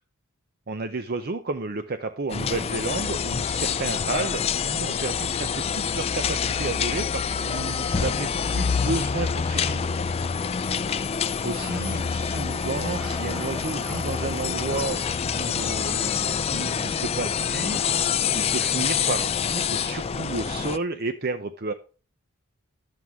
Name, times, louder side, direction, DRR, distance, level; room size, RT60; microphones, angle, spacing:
voice 1, 0.7-10.0 11.4-21.7, right 3 dB, 45° right, 9 dB, 0.6 m, -32 dB
sound 1, 2.3-20.8, left 6 dB, 25° left, 0.3 m, -26 dB
sound 2, 11.6-19.2, equal, 5° right, 0.9 m, -44 dB
11.0 x 7.7 x 3.5 m, 0.36 s
head